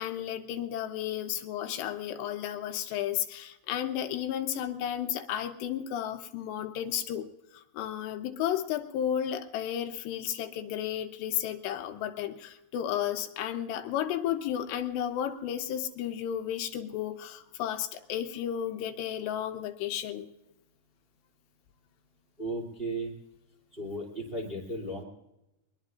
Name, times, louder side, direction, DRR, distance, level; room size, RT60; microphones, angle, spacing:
voice 1, 0.0-7.3 7.5-20.3, left 10 dB, 80° left, 6 dB, 2.9 m, -33 dB
voice 2, 22.4-23.1 23.7-25.0, right 1 dB, 15° right, -1 dB, 2.2 m, -35 dB
23.5 x 20.5 x 2.5 m, 0.93 s
omnidirectional pair, 5.1 m